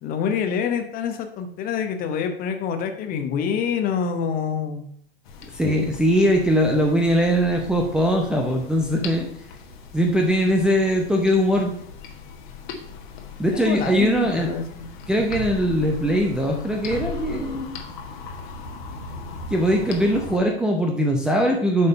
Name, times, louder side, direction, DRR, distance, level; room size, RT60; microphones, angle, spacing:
voice 1, 0.0-4.8 13.5-14.9 15.1-15.2, left 7 dB, 30° left, 7 dB, 1.0 m, -26 dB
sound 1, 5.3-20.4, left 4 dB, 50° left, 1.4 m, -38 dB
voice 2, 5.5-9.3 9.9-11.7 13.4-14.5 15.1-17.8 19.5-21.9, equal, ahead, 0 dB, 0.7 m, -21 dB
7.7 x 5.3 x 5.4 m, 0.63 s
figure-of-eight pair, 95°, 31 cm